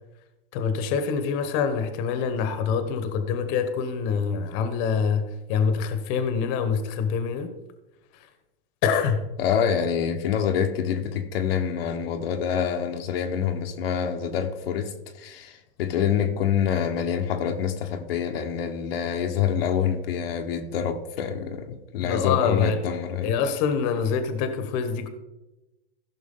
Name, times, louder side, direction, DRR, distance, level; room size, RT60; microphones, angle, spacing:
voice 1, 0.5-7.5 8.1-8.3 8.8-9.2 22.0-22.8 23.2-25.1, left 6 dB, 45° left, 1.2 m, -25 dB
voice 2, 9.4-23.3, left 8 dB, 75° left, 1.2 m, -26 dB
15.5 x 6.0 x 3.8 m
hypercardioid pair, 130°, 30 cm